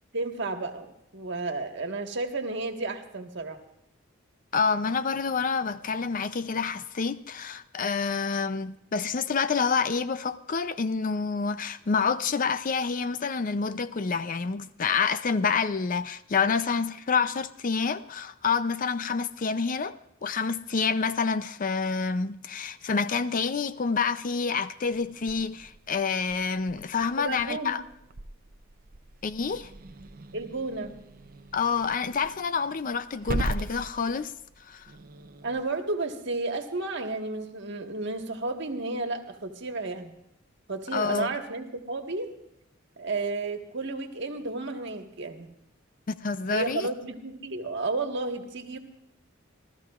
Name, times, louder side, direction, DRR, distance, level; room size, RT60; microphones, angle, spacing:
voice 1, 0.1-3.6 27.2-27.8 30.3-30.9 35.4-40.1 40.7-42.3 43.0-45.5 46.5-48.8, right 3 dB, 60° right, 1.5 m, -32 dB
voice 2, 4.5-19.9 20.2-27.8 29.2-29.7 31.5-34.3 34.7-34.9 40.9-41.3 46.1-46.9, left 5 dB, 40° left, 0.5 m, -28 dB
Growling / Hiss, 24.9-35.6, right 2 dB, 45° right, 0.7 m, -40 dB
28.5 x 13.5 x 2.5 m
head